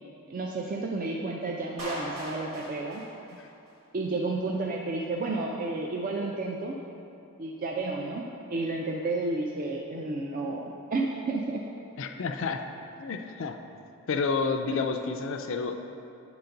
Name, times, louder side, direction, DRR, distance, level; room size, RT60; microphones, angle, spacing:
voice 1, 0.3-3.0 3.9-6.8 7.4-11.6, right 2 dB, 40° right, 0 dB, 0.4 m, -31 dB
Clapping, 1.8-3.8, equal, 80° right, 1.6 m, -39 dB
voice 2, 12.0-12.7 13.0-13.6 14.1-15.7, left 4 dB, 60° left, 5 dB, 0.4 m, -30 dB
8.3 x 3.9 x 5.7 m, 2.7 s
head